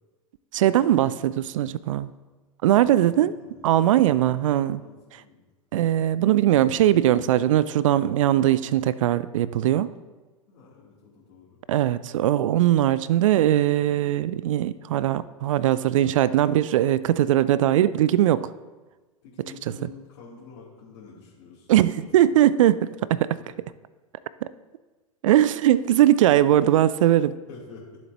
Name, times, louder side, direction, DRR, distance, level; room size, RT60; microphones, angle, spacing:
voice 1, 0.5-2.1 2.6-3.3 3.6-4.8 5.7-9.9 11.7-18.5 21.7-23.4 24.4-24.5 25.2-27.4, right 12 dB, 60° right, 17 dB, 0.4 m, -20 dB
voice 2, 2.8-3.9 4.8-5.4 10.5-11.6 19.2-21.7 22.0-22.1 27.5-28.0, left 5 dB, 50° left, -8 dB, 2.9 m, -47 dB
13.5 x 7.4 x 2.9 m, 1.3 s
figure-of-eight pair, 90°, 19 cm